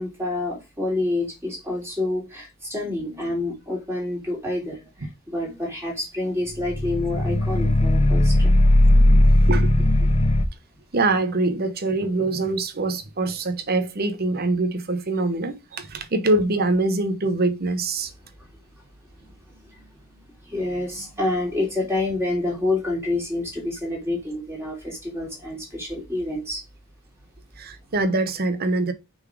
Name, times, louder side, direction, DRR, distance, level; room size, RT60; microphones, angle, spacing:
voice 1, 0.0-4.8 5.3-8.5 20.5-26.6, left 2 dB, 10° right, 3.0 m, -28 dB
sound 1, 6.6-10.5, left 1 dB, 30° left, 0.5 m, -17 dB
voice 2, 8.9-9.7 10.0-10.1 10.9-18.1 27.6-28.9, right 2 dB, 45° right, 0.9 m, -24 dB
6.2 x 4.1 x 4.9 m
head